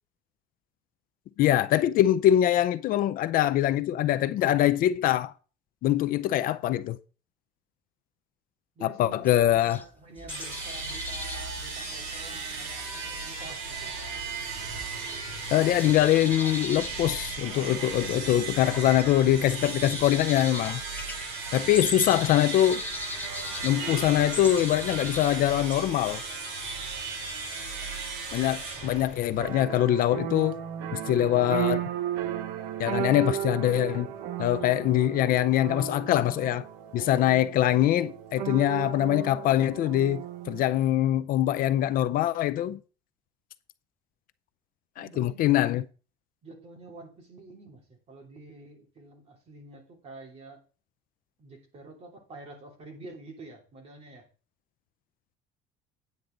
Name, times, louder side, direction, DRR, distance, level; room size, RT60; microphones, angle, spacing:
voice 1, 1.4-5.3 5.8-7.0 8.8-9.8 15.5-20.8 21.5-22.8 23.6-26.2 28.3-30.6 30.9-31.9 32.8-34.1 34.4-36.7 36.9-42.8 45.0-45.8, left 12 dB, 50° left, 0.5 m, -23 dB
voice 2, 8.7-13.9 44.9-45.6 46.4-50.6 51.4-54.3, right 2 dB, 35° right, 3.0 m, -48 dB
sound 1, 9.2-15.5 15.7-25.7, left 3 dB, 10° left, 0.9 m, -40 dB
sound 2, 10.3-29.7, right 4 dB, 70° right, 4.8 m, -36 dB
sound 3, 29.4-40.6, right 10 dB, 90° right, 1.0 m, -34 dB
9.5 x 8.5 x 3.9 m
cardioid pair, 150°, 19 cm